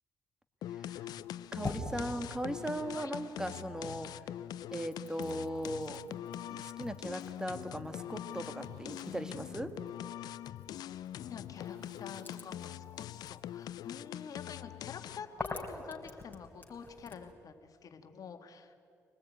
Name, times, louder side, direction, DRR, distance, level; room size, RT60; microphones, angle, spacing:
sound 1, 0.6-15.4, left 12 dB, 80° left, 0.5 m, -43 dB
Telephone, 0.9-13.7, equal, 65° right, 6.5 m, -61 dB
sound 2, 1.1-3.7 4.1-17.3, left 2 dB, 25° left, 4.3 m, -48 dB
voice 1, 1.5-4.1 4.7-6.0 6.5-9.7, right 1 dB, 10° right, 9 dB, 2.1 m, -38 dB
voice 2, 11.2-18.7, left 6 dB, 65° left, 6 dB, 1.9 m, -48 dB
25.0 x 19.0 x 9.4 m, 2.5 s
cardioid pair, 70°, 7 cm